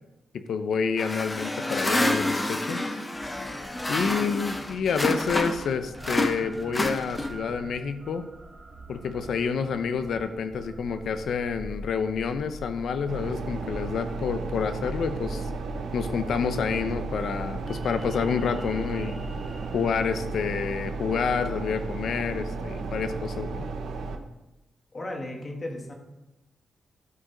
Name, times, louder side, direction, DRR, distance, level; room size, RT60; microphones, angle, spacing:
voice 1, 0.5-3.0 3.9-8.2 8.9-15.5 15.9-19.3 19.7-23.7, left 6 dB, 70° left, 9 dB, 0.7 m, -28 dB
sound 1, 1.0-5.7 6.0-7.5, left 1 dB, 15° left, 0.8 m, -28 dB
sound 2, 3.1-20.0, right 1 dB, 15° right, 1.8 m, -45 dB
voice 2, 3.9-4.3 24.9-25.9, left 1 dB, 30° left, 2 dB, 1.7 m, -36 dB
sound 3, 13.1-24.2, right 3 dB, 90° right, 0.9 m, -34 dB
12.5 x 5.2 x 5.1 m, 0.98 s
wide cardioid pair, 135°, 0 cm